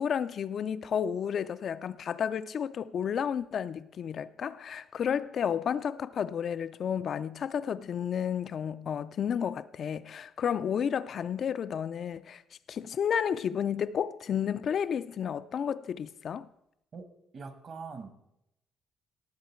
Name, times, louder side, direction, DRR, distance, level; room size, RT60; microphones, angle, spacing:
voice 1, 0.0-12.4 12.7-16.5, left 8 dB, 45° left, 0.4 m, -31 dB
voice 2, 16.9-18.1, right 5 dB, 40° right, 1.2 m, -43 dB
18.0 x 7.6 x 4.4 m
cardioid pair, 150°, 0 cm